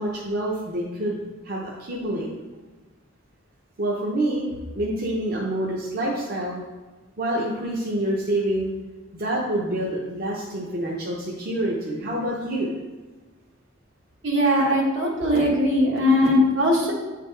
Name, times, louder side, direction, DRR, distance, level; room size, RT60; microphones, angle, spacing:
voice 1, 0.0-2.3 3.8-4.5 4.8-6.6 7.2-8.7 9.1-12.7, right 1 dB, 50° right, -3 dB, 0.7 m, -27 dB
voice 2, 14.2-16.9, left 1 dB, 75° right, -3 dB, 1.5 m, -20 dB
9.5 x 3.4 x 3.3 m, 1.2 s
head